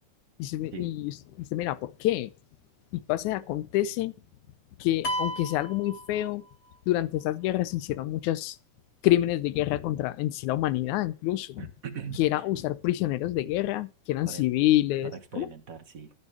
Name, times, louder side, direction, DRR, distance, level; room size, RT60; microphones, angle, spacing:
voice 1, 0.4-1.1 1.4-2.3 2.9-4.1 4.8-6.4 6.9-8.6 9.0-11.6 12.2-15.1 15.4-15.5, left 15 dB, 90° left, 2.1 m, -27 dB
sound 1, 0.6-11.0 11.5-12.9 13.1-14.0, left 11 dB, 70° left, 1.9 m, -49 dB
sound 2, 5.0-6.7, equal, 45° left, 1.2 m, -34 dB
voice 2, 11.6-12.5 14.2-14.5 15.0-16.1, right 6 dB, 45° right, 1.1 m, -40 dB
14.5 x 5.4 x 6.4 m
omnidirectional pair, 3.3 m